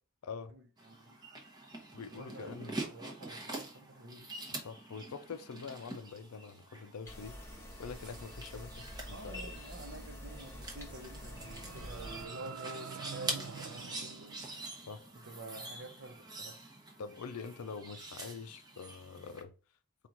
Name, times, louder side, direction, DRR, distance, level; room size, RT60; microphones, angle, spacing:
voice 1, 0.5-1.2 2.1-4.3 9.1-14.3 15.2-16.6, right 2 dB, 55° right, 0.8 m, -49 dB
sound 1, 0.8-19.4, right 2 dB, 20° right, 0.8 m, -46 dB
voice 2, 1.9-2.7 4.5-7.4 7.8-9.6 14.9-15.0 17.0-19.5, left 5 dB, 90° left, 0.5 m, -45 dB
sound 2, 7.1-12.3, equal, 10° left, 0.8 m, -47 dB
sound 3, 11.0-15.2, right 6 dB, 85° right, 0.5 m, -47 dB
4.5 x 2.4 x 3.8 m
head